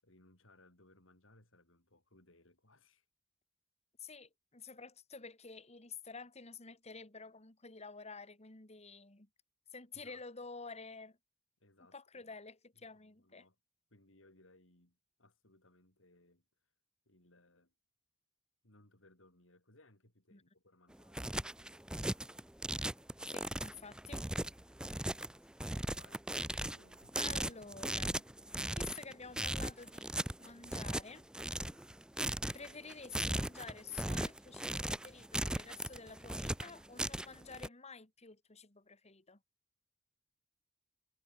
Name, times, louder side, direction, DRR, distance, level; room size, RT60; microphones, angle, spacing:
voice 1, 0.0-3.1 9.9-10.2 11.6-12.4 12.7-13.6 13.9-16.7 17.1-17.7 18.6-21.6 23.1-23.2 25.4-26.3 26.7-27.4 31.6-31.9, left 2 dB, 75° left, 6.9 m, -66 dB
voice 2, 4.0-9.3 9.7-11.2 11.9-13.4 20.3-20.4 23.3-24.2 27.1-28.3 28.6-31.3 32.5-39.4, left 4 dB, 35° left, 2.4 m, -50 dB
sound 1, 20.9-37.7, right 1 dB, 5° right, 0.5 m, -38 dB
head